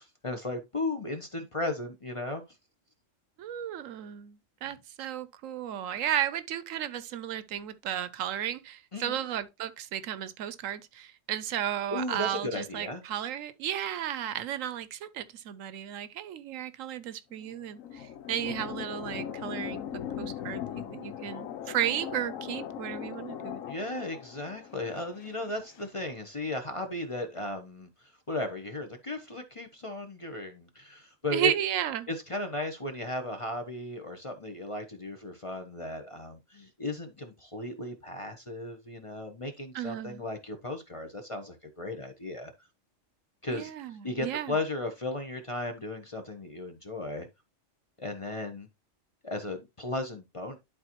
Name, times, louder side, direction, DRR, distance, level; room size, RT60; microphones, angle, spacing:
voice 1, 0.0-2.4 4.6-4.7 8.9-9.2 11.9-13.0 23.7-27.9 28.3-31.5 32.1-42.5 43.4-43.7 44.0-47.3 48.0-48.7 49.2-50.6, left 2 dB, 30° left, 0.8 m, -35 dB
voice 2, 3.4-23.6 31.3-32.1 39.7-40.2 43.5-44.5, right 10 dB, 75° right, 1.0 m, -34 dB
sound 1, 17.3-25.9, left 9 dB, 80° left, 1.1 m, -39 dB
11.0 x 4.1 x 2.9 m
omnidirectional pair, 1.4 m